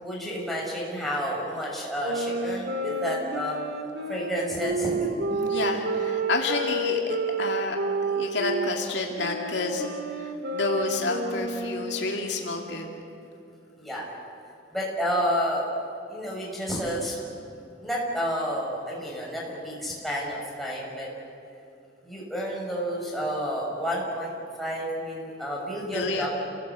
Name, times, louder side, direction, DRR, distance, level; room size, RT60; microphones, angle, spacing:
voice 1, 0.0-3.6 4.1-5.1 13.8-14.1 14.7-15.8 16.1-17.2 17.8-21.1 22.0-26.3, equal, ahead, -4 dB, 5.8 m, -30 dB
sound 1, 2.0-8.7 9.2-12.1, right 2 dB, 60° right, 2.1 m, -30 dB
voice 2, 5.3-7.8 8.1-12.9 25.9-26.3, left 3 dB, 65° left, 1 dB, 2.4 m, -30 dB
29.5 x 17.5 x 8.3 m, 2.6 s
head